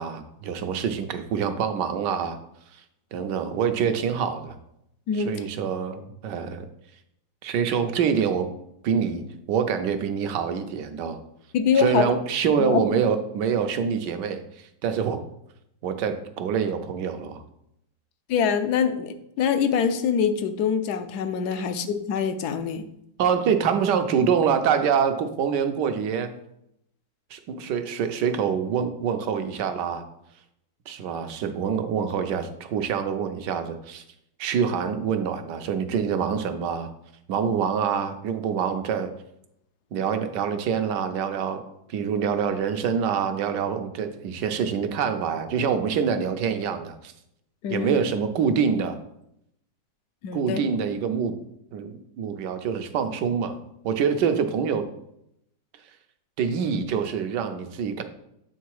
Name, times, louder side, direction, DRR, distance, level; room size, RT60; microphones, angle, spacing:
voice 1, 0.0-2.4 3.1-4.5 5.1-6.7 7.4-8.5 8.8-11.2 11.7-15.2 15.8-17.4 21.5-21.6 23.2-26.3 27.3-30.0 30.9-34.0 34.4-36.9 37.3-39.1 39.9-41.6 41.9-47.1 47.7-49.0 50.3-51.3 51.7-54.8 56.4-58.0, right 7 dB, 70° right, 8 dB, 1.2 m, -25 dB
voice 2, 11.5-12.1 12.6-12.8 18.3-22.8 47.6-48.0 50.2-50.6, left 7 dB, 65° left, 9 dB, 1.1 m, -24 dB
8.1 x 3.7 x 4.7 m, 0.78 s
omnidirectional pair, 2.0 m